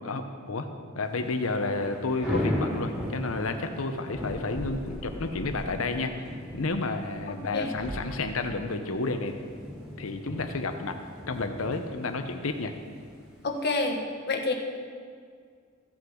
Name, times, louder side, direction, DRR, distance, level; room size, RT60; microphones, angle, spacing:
voice 1, 0.0-0.7 0.9-9.3 10.0-10.9 11.3-12.7, left 3 dB, 85° left, 7 dB, 0.9 m, -31 dB
Thunder / Rain, 1.1-13.8, left 1 dB, 5° right, 3.1 m, -37 dB
Thump thud, 4.4-5.1 7.8-8.3, right 1 dB, 20° right, 0.6 m, -39 dB
voice 2, 13.4-14.0 14.3-14.5, left 3 dB, 55° left, 3 dB, 1.2 m, -27 dB
15.0 x 8.6 x 3.9 m, 2.1 s
head